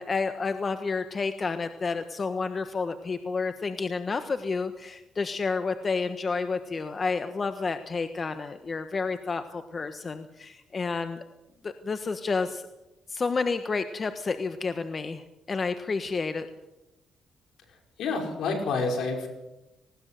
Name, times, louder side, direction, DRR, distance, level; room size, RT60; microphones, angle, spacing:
voice 1, 0.0-11.2 11.6-12.7 13.1-16.5, left 4 dB, 35° left, 9 dB, 1.4 m, -30 dB
voice 2, 17.7-19.3, left 3 dB, 75° left, 3 dB, 5.6 m, -29 dB
19.5 x 18.5 x 7.7 m, 0.95 s
cardioid pair, 90°, 0 cm